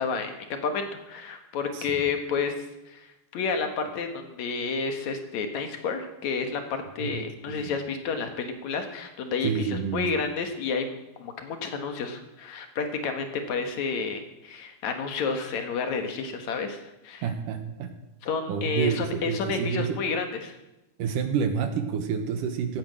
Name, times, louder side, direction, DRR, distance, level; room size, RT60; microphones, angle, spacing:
voice 1, 0.0-2.5 2.9-17.2 18.2-20.6, left 5 dB, 60° left, 6 dB, 2.2 m, -30 dB
voice 2, 7.0-7.7 9.4-10.1 17.2-17.9 18.5-20.0 21.0-22.8, right 6 dB, 65° right, 7 dB, 2.3 m, -29 dB
16.5 x 8.7 x 7.6 m, 0.95 s
omnidirectional pair, 4.6 m